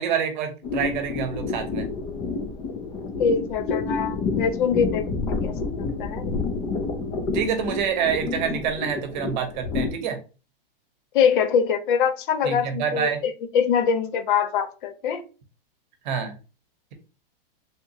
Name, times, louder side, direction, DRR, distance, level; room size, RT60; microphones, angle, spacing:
voice 1, 0.0-1.9 7.3-10.2 12.4-13.2 16.0-16.4, right 7 dB, 50° right, 6 dB, 0.9 m, -27 dB
sound 1, 0.6-9.9, left 4 dB, 20° left, 0.3 m, -29 dB
voice 2, 3.2-6.2 11.1-15.2, left 7 dB, 60° left, 9 dB, 0.6 m, -24 dB
3.4 x 2.7 x 2.7 m, 0.34 s
supercardioid pair, 155°, 29 cm